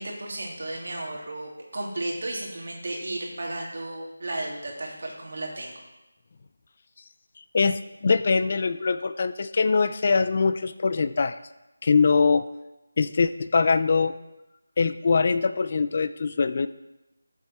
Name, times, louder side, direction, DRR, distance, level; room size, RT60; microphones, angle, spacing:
voice 1, 0.0-5.7, right 1 dB, 45° right, -2 dB, 2.6 m, -34 dB
voice 2, 7.5-11.4 11.8-12.4 13.0-14.2 14.8-16.7, left 4 dB, 30° left, 12 dB, 0.4 m, -22 dB
13.5 x 7.2 x 4.3 m, 1.0 s
figure-of-eight pair, 175°, 0 cm